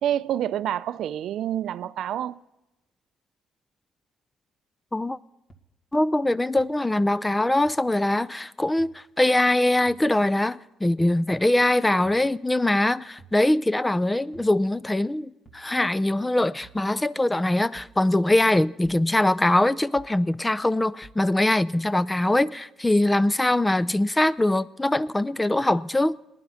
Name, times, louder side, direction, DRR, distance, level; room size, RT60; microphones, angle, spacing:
voice 1, 0.0-2.4, right 11 dB, 75° right, 0.4 m, -27 dB
sound 1, 5.5-5.6 6.6-6.7 7.6-7.7 8.8-8.9 9.8-10.0 11.0-11.2 12.0-12.2 13.2-13.4 14.3-14.5 15.4-15.7 16.6-16.8 17.7-18.0 18.8-19.1 20.0-20.2 21.0-21.2, right 3 dB, 35° left, 1.8 m, -50 dB
voice 2, 5.9-26.2, left 1 dB, 15° left, 0.4 m, -22 dB
19.0 x 10.5 x 5.7 m
cardioid pair, 90°, 0 cm